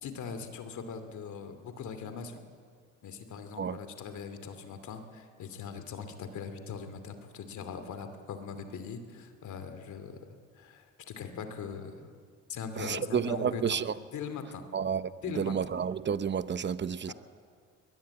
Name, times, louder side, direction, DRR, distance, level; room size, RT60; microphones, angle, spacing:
voice 1, 0.0-2.4 3.0-10.2 10.6-12.1 12.5-14.7 15.2-15.5 17.1-17.2, left 6 dB, 75° left, 2.7 m, -41 dB
voice 2, 12.8-13.9 14.7-17.1, right 7 dB, 35° right, 0.9 m, -31 dB
22.0 x 20.5 x 8.9 m
cardioid pair, 90°, 30 cm